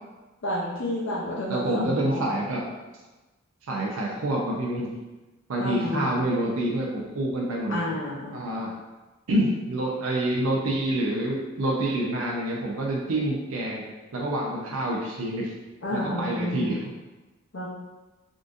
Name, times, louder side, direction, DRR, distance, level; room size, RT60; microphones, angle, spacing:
voice 1, 0.4-2.2 5.6-6.1 7.7-8.3 15.8-16.8 17.5-17.7, left 1 dB, 65° left, -5 dB, 0.6 m, -30 dB
voice 2, 1.5-2.6 3.7-4.9 5.5-7.9 8.3-8.7 9.3-13.8 14.1-15.5 15.9-16.8, right 1 dB, 85° right, -2 dB, 0.5 m, -27 dB
3.7 x 2.5 x 2.5 m, 1.1 s
head